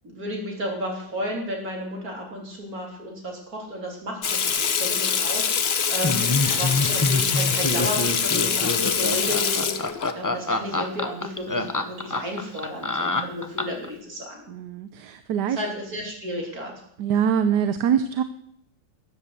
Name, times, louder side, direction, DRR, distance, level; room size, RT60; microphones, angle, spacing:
voice 1, 0.0-6.2 6.5-14.5 15.4-16.7, equal, 50° right, 0 dB, 4.0 m, -33 dB
Water tap faucet / Sink (filling or washing), 4.2-10.1, left 6 dB, 45° left, 0.9 m, -24 dB
Laughter, 6.0-13.9, left 2 dB, 20° left, 0.5 m, -26 dB
voice 2, 14.5-15.6 17.0-18.2, right 8 dB, 70° right, 10 dB, 1.3 m, -24 dB
13.0 x 9.6 x 8.1 m, 0.70 s
omnidirectional pair, 2.0 m